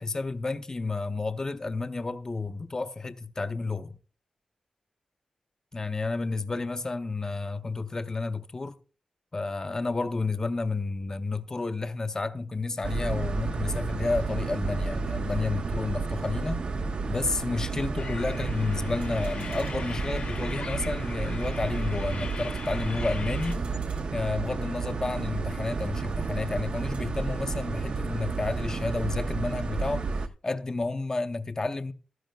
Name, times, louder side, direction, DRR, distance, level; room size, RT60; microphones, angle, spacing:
voice 1, 0.0-4.0 5.7-8.8 9.3-16.7 17.1-23.7 24.1-30.1 30.4-31.9, left 3 dB, 25° left, 0.6 m, -31 dB
Turnstile RX, 12.5-12.8 15.1-16.1 18.7-18.8 19.0-20.7 23.3-24.9 26.8-27.2, right 4 dB, 90° right, 4.0 m, -57 dB
sound 1, 12.8-30.3, right 4 dB, 50° right, 0.6 m, -31 dB
sound 2, 18.0-23.5, left 5 dB, 60° left, 1.0 m, -41 dB
14.0 x 12.5 x 2.2 m
wide cardioid pair, 120°, 2 cm